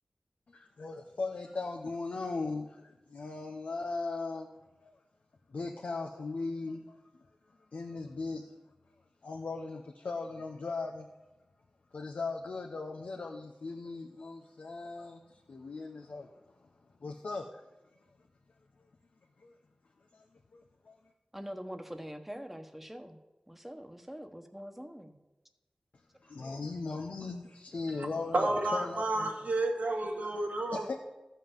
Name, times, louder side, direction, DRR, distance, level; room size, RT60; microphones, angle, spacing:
voice 1, 0.5-4.5 4.8-5.0 5.5-7.2 7.7-8.5 9.2-11.1 11.9-16.3 17.0-17.6 19.4-19.5 20.1-20.2 20.5-21.0 26.2-29.3 30.7-30.9, left 3 dB, 85° left, 2 dB, 0.9 m, -38 dB
voice 2, 21.3-23.2 23.5-25.2 27.7-27.8, equal, 5° right, 6 dB, 1.2 m, -44 dB
voice 3, 28.3-30.9, right 2 dB, 85° right, 0 dB, 1.9 m, -30 dB
14.0 x 5.7 x 7.2 m, 1.1 s
wide cardioid pair, 55°, 3 cm